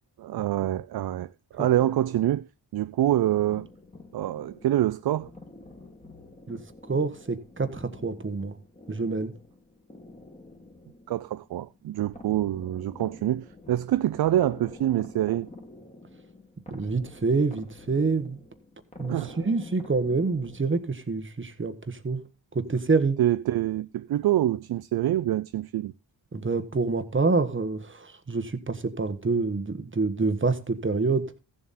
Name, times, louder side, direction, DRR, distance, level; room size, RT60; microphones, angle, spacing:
voice 1, 0.2-2.5 2.7-3.7 4.1-5.3 11.1-15.5 19.1-19.4 23.2-25.9, right 13 dB, 60° right, 0.5 m, -26 dB
sound 1, 3.1-21.2, left 2 dB, 15° left, 2.1 m, -48 dB
voice 2, 6.9-8.6 8.9-9.3 16.7-18.4 19.0-22.2 22.5-23.2 26.3-31.3, right 4 dB, 25° right, 1.4 m, -27 dB
14.5 x 7.5 x 4.2 m
cardioid pair, 80°, 44 cm